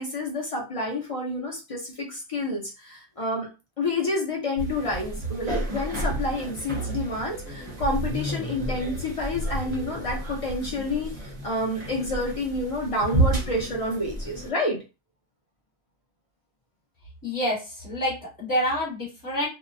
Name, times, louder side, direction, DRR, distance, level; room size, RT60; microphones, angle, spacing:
voice 1, 0.0-3.5 3.8-14.8, left 1 dB, 45° left, 0 dB, 0.4 m, -29 dB
sound 1, 4.6-14.5, right 2 dB, 30° right, 0.6 m, -31 dB
voice 2, 17.2-19.5, equal, 15° left, -4 dB, 1.1 m, -27 dB
2.7 x 2.0 x 2.5 m, 0.29 s
omnidirectional pair, 1.4 m